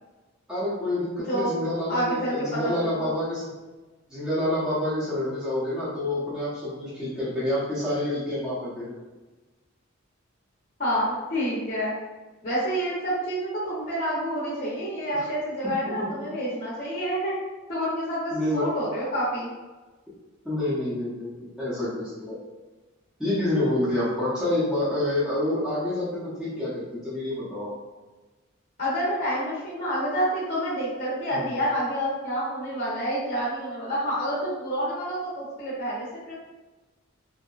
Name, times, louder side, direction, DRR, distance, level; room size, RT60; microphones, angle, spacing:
voice 1, 0.5-3.5 4.1-8.9 15.2-15.3 18.3-18.7 20.4-22.4 23.2-27.7 31.3-31.5, left 1 dB, 5° right, -12 dB, 0.7 m, -28 dB
voice 2, 1.9-3.1 10.8-11.9 12.4-17.3 17.7-19.5 28.8-36.3, equal, 40° left, -8 dB, 0.7 m, -28 dB
2.7 x 2.1 x 2.3 m, 1.2 s
head